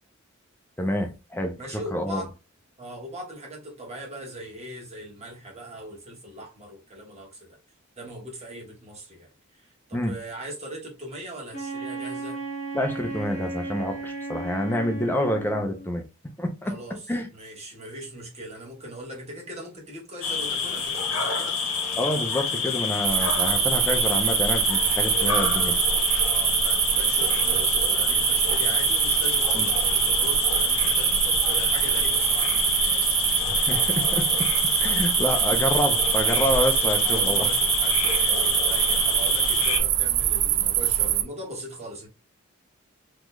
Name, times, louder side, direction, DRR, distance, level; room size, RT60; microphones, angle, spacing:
voice 1, 0.8-2.2 9.9-10.2 12.7-16.0 16.4-16.8 17.1-17.3 22.0-25.8 29.5-29.7 33.5-34.5 34.8-37.5, equal, 10° left, 0.5 m, -27 dB
voice 2, 1.6-2.3 2.8-7.6 8.0-9.3 9.6-12.4 16.6-21.6 26.2-33.0 36.9-42.1, right 1 dB, 30° right, 1.4 m, -40 dB
Wind instrument woodwind instrument, 11.5-15.9, right 3 dB, 35° left, 1.0 m, -35 dB
sound 1, 20.2-39.8, left 5 dB, 75° left, 0.9 m, -27 dB
sound 2, 23.0-41.2, right 12 dB, 75° right, 0.4 m, -24 dB
3.7 x 3.1 x 2.2 m
head